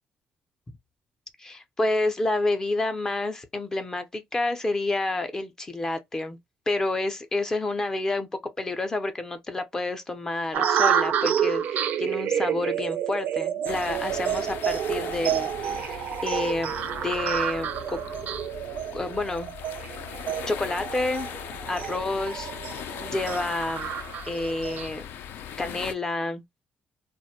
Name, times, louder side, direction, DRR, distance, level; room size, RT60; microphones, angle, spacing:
voice 1, 1.4-6.4 6.7-8.3 8.6-16.7 17.0-18.0 18.9-19.5 20.5-21.3 21.7-22.5 23.0-23.9 24.3-25.0 25.6-26.4, left 2 dB, 15° left, 0.4 m, -29 dB
sound 1, 10.5-24.9, right 9 dB, 55° right, 0.3 m, -29 dB
sound 2, 13.7-25.9, left 9 dB, 80° left, 0.4 m, -39 dB
2.4 x 2.0 x 2.7 m
cardioid pair, 175°, 4 cm